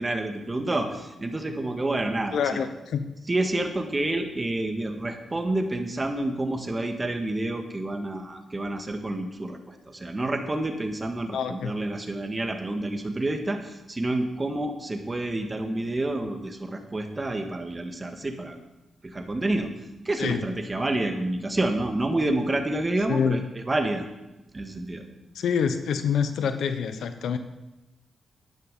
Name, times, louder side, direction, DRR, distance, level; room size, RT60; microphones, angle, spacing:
voice 1, 0.0-2.6 3.3-18.6 19.0-19.7 20.0-24.0 24.5-25.0, right 2 dB, 30° right, 5 dB, 1.8 m, -28 dB
voice 2, 2.3-3.0 11.3-11.7 20.2-20.4 23.1-23.4 25.3-27.4, left 7 dB, 85° left, 10 dB, 0.8 m, -26 dB
11.0 x 9.7 x 5.4 m, 0.99 s
cardioid pair, 60°, 0 cm